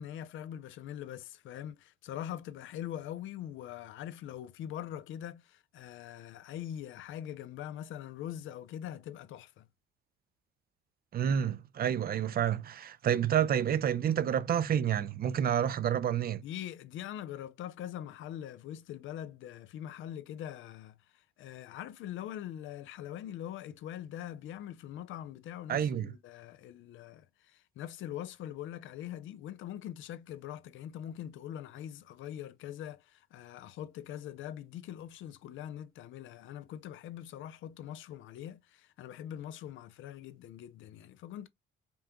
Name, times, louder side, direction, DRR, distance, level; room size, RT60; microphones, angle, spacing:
voice 1, 0.0-9.7 16.4-41.5, left 11 dB, 80° left, 0.5 m, -43 dB
voice 2, 11.1-16.4 25.7-26.1, right 9 dB, 50° right, 0.5 m, -29 dB
5.3 x 2.2 x 2.9 m
cardioid pair, 90°, 20 cm